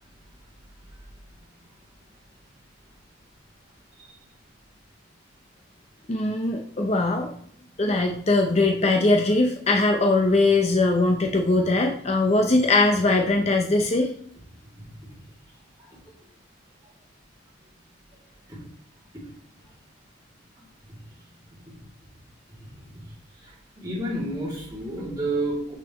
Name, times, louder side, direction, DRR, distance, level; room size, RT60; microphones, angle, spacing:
voice 1, 6.1-7.3 7.8-14.1, left 2 dB, 30° left, 3 dB, 0.6 m, -21 dB
voice 2, 14.8-15.2 15.9-16.2 18.5-18.6 20.9-21.0 22.6-22.7 23.4-25.7, right 1 dB, 20° right, -6 dB, 2.5 m, -31 dB
6.9 x 6.0 x 3.0 m, 0.62 s
head